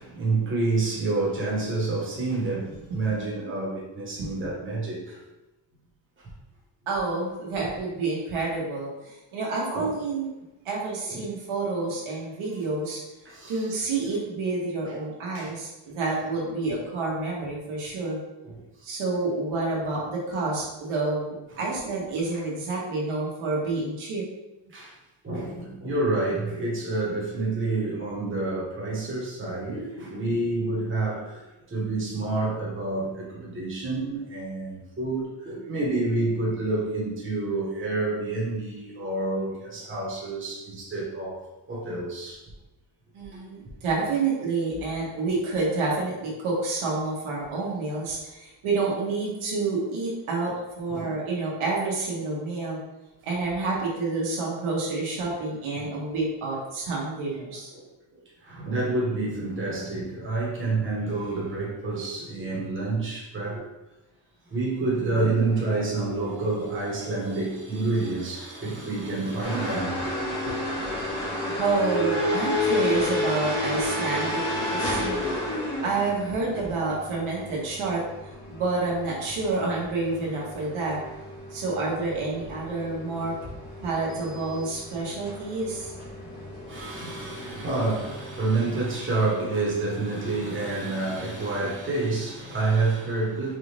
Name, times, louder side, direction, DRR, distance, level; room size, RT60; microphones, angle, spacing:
voice 1, 0.0-5.2 6.2-6.3 9.7-9.9 11.1-11.3 13.2-13.7 14.9-15.0 15.3-15.5 18.4-18.6 22.3-22.4 24.7-25.0 25.2-42.4 43.3-43.4 50.9-51.1 55.7-55.9 57.7-57.8 58.1-63.7 64.5-70.1 70.4-70.5 86.7-93.6, right 3 dB, 25° right, 1.2 m, -28 dB
voice 2, 6.9-10.3 10.6-13.0 13.5-18.2 18.8-24.2 43.1-52.8 53.2-57.7 71.5-74.4 74.7-75.4 75.8-78.0 78.5-81.0 81.5-83.3 83.8-85.9, right 3 dB, 85° right, 1.3 m, -28 dB
sound 1, 69.4-88.9, left 1 dB, 60° left, 1.5 m, -32 dB
4.7 x 2.5 x 3.3 m
cardioid pair, 150°, 48 cm